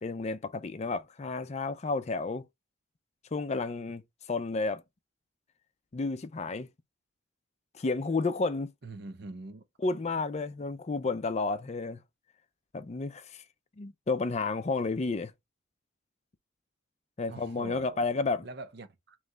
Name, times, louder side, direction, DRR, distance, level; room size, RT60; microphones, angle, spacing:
voice 1, 0.0-2.4 3.3-4.0 4.3-4.8 5.9-6.7 7.7-8.7 9.8-12.0 12.7-13.4 13.8-15.3 17.2-18.4, left 3 dB, 35° left, 0.4 m, -31 dB
voice 2, 8.8-9.6 17.3-18.1 18.4-19.2, right 2 dB, 60° right, 0.8 m, -44 dB
3.4 x 3.1 x 3.8 m
head